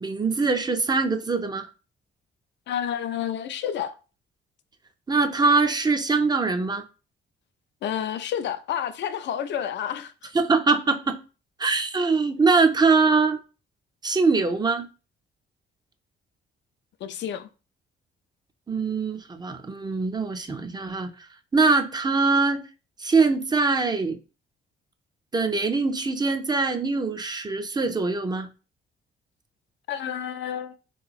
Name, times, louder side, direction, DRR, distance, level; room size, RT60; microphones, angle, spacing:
voice 1, 0.0-1.7 5.1-6.8 10.3-11.2 11.6-13.4 14.0-14.9 18.7-21.1 21.5-22.6 23.0-24.2 25.3-28.5, right 4 dB, 20° right, 0.4 m, -23 dB
voice 2, 2.7-3.9 7.8-10.3 17.0-17.5 29.9-30.7, left 9 dB, 65° left, 0.4 m, -30 dB
3.3 x 2.9 x 2.3 m
cardioid pair, 90°, 20 cm